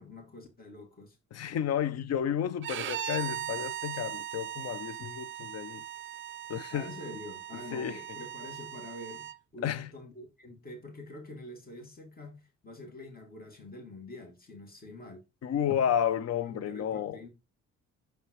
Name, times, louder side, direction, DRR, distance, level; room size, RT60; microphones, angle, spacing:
voice 1, 0.0-1.2 6.7-9.3 9.5-15.2 16.4-17.3, left 2 dB, 30° left, 2.4 m, -46 dB
voice 2, 1.3-5.8 6.5-6.9 7.7-8.0 9.6-9.9 15.4-17.2, left 9 dB, 55° left, 0.6 m, -31 dB
Bowed string instrument, 2.6-9.4, right 12 dB, 40° right, 0.4 m, -39 dB
6.9 x 5.6 x 3.0 m
cardioid pair, 90°, 30 cm